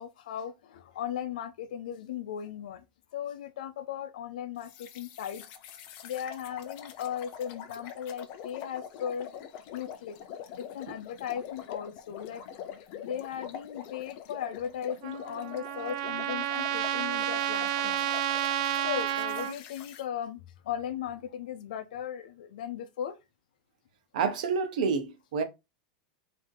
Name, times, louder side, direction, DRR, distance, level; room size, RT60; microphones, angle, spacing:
voice 1, 0.0-2.8 3.1-5.4 6.0-9.3 9.7-10.2 10.6-12.4 13.0-18.1 18.8-23.2, left 9 dB, 90° left, 0.6 m, -37 dB
sound 1, 4.6-20.0, left 9 dB, 40° left, 0.5 m, -45 dB
Trumpet, 15.0-19.5, right 11 dB, 50° right, 0.3 m, -30 dB
voice 2, 24.1-25.4, right 5 dB, 70° right, 0.9 m, -28 dB
3.7 x 2.8 x 3.6 m
supercardioid pair, 170°, 4 cm